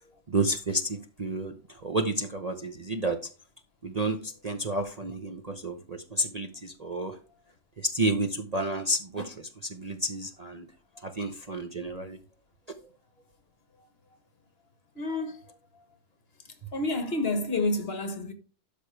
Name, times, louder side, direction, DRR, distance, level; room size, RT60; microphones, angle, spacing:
voice 1, 0.3-3.3 3.8-7.2 7.8-10.7 11.0-12.2 12.7-12.8, right 1 dB, 35° right, 0.8 m, -31 dB
voice 2, 14.9-15.4 16.7-18.3, left 2 dB, 45° left, 1.5 m, -29 dB
12.5 x 5.2 x 3.3 m
omnidirectional pair, 1.5 m